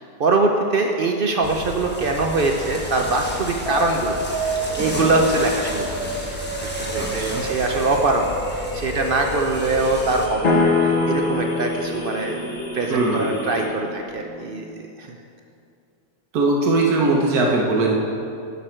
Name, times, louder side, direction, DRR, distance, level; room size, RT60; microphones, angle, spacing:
voice 1, 0.0-6.0 6.6-15.2, right 3 dB, 65° right, 3 dB, 0.5 m, -23 dB
sound 1, 1.4-10.3, equal, 10° left, 1.0 m, -32 dB
sound 2, 3.7-13.7, right 1 dB, 85° left, 2.2 m, -30 dB
voice 2, 7.0-7.4 12.9-13.3 16.3-18.0, right 2 dB, 80° right, -1 dB, 1.4 m, -20 dB
sound 3, 10.4-14.5, left 3 dB, 45° left, 1.1 m, -25 dB
11.0 x 6.9 x 4.4 m, 2.5 s
omnidirectional pair, 1.6 m